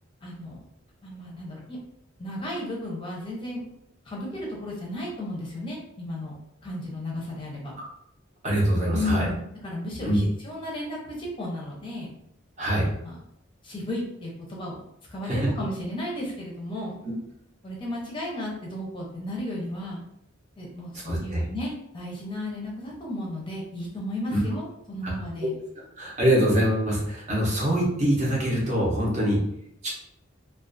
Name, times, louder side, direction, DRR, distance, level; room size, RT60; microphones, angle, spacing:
voice 1, 0.2-0.6 1.0-1.8 2.2-3.6 4.0-6.3 6.6-7.7 8.9-12.1 13.0-13.2 13.6-14.8 15.1-17.0 17.6-20.0 20.6-25.5, left 1 dB, 25° left, -3 dB, 0.6 m, -34 dB
voice 2, 8.4-9.2 10.0-10.2 12.6-12.9 15.3-15.5 21.1-21.4 24.3-24.4 25.0-25.1 26.0-29.4 29.8-29.9, right 1 dB, 35° right, -3 dB, 0.7 m, -24 dB
2.4 x 2.3 x 2.5 m, 0.74 s
head